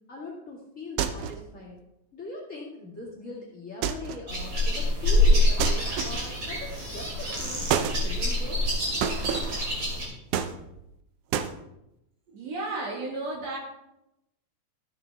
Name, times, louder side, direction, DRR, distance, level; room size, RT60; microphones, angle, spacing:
voice 1, 0.1-1.8 2.1-8.6, left 2 dB, 30° left, -3 dB, 2.1 m, -41 dB
sound 1, 1.0-1.5 3.8-4.3 5.6-6.4 7.7-8.0 9.0-9.6 10.3-10.9 11.3-11.5, right 8 dB, 80° right, 1.4 m, -29 dB
sound 2, 4.3-10.1, left 1 dB, 40° right, 3.2 m, -25 dB
voice 2, 12.3-13.6, right 2 dB, 60° right, -1 dB, 2.9 m, -33 dB
13.5 x 7.5 x 3.5 m, 0.86 s
omnidirectional pair, 3.4 m